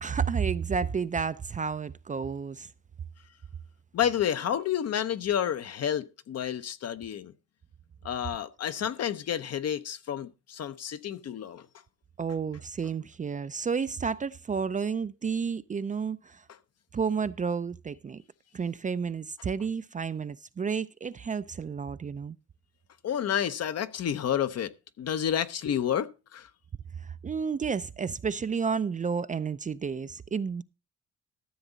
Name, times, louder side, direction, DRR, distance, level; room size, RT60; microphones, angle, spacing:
voice 1, 0.0-2.7 12.2-16.4 16.9-18.2 18.5-22.4 27.0-30.6, right 6 dB, 25° right, 0.4 m, -31 dB
voice 2, 3.9-7.3 8.0-11.7 23.0-24.7 25.0-26.5, left 9 dB, 55° left, 0.8 m, -30 dB
13.5 x 7.2 x 4.0 m
cardioid pair, 90°, 30 cm